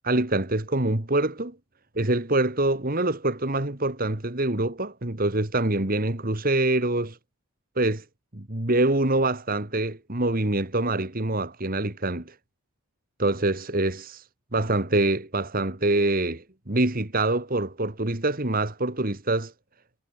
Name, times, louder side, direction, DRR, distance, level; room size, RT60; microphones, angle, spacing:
voice 1, 0.0-1.6 2.0-7.2 7.8-8.0 8.3-12.3 13.2-14.1 14.5-19.5, right 2 dB, 40° right, 2.0 m, -25 dB
head